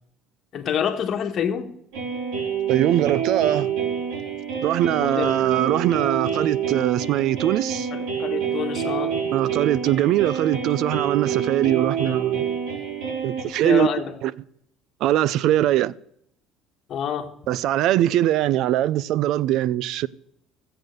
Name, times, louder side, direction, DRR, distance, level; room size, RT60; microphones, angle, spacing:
voice 1, 0.5-1.7 4.9-5.4 7.9-9.2 13.6-14.1 16.9-17.3, left 8 dB, 45° left, 1.6 m, -27 dB
sound 1, 1.9-13.4, right 7 dB, 85° right, 4.2 m, -27 dB
voice 2, 2.7-3.7 4.6-7.9 9.3-12.4 13.2-13.9 14.2-14.3 15.0-16.0 17.5-20.1, right 13 dB, 65° right, 0.5 m, -21 dB
15.0 x 7.9 x 6.6 m
cardioid pair, 125°, 0 cm